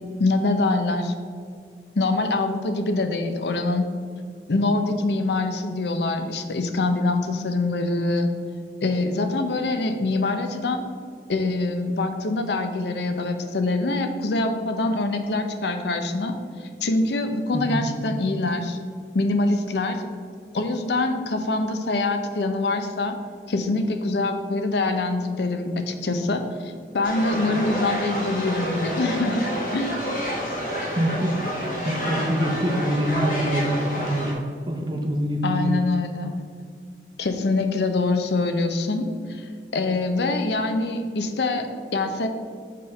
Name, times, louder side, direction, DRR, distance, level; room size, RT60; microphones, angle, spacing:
voice 1, 0.2-1.1 1.9-3.9 4.5-8.3 8.8-10.9 11.3-18.8 19.1-20.0 20.5-23.2 23.5-30.0 35.4-36.4 37.2-42.3, left 2 dB, 70° left, 7 dB, 0.6 m, -24 dB
voice 2, 17.5-17.8 27.4-27.7 31.0-31.5 31.8-34.3 34.7-35.9, equal, 25° right, 3 dB, 0.6 m, -25 dB
sound 1, 27.0-34.3, equal, 50° left, 1.3 m, -29 dB
6.6 x 3.6 x 5.3 m, 2.2 s
head